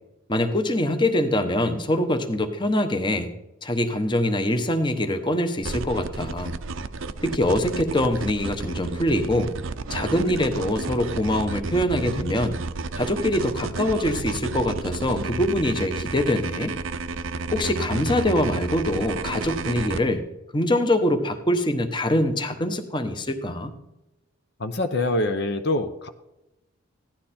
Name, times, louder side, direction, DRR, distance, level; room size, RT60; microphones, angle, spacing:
voice 1, 0.3-3.3 3.6-6.6 7.2-9.5 9.9-12.6 13.0-16.7 17.5-20.2 20.5-23.7, left 1 dB, 20° left, 8 dB, 1.0 m, -24 dB
sound 1, 5.6-20.0, right 3 dB, 65° right, 0.7 m, -31 dB
voice 2, 24.6-26.1, left 2 dB, 50° left, 7 dB, 0.8 m, -25 dB
16.0 x 12.0 x 4.3 m, 0.92 s
head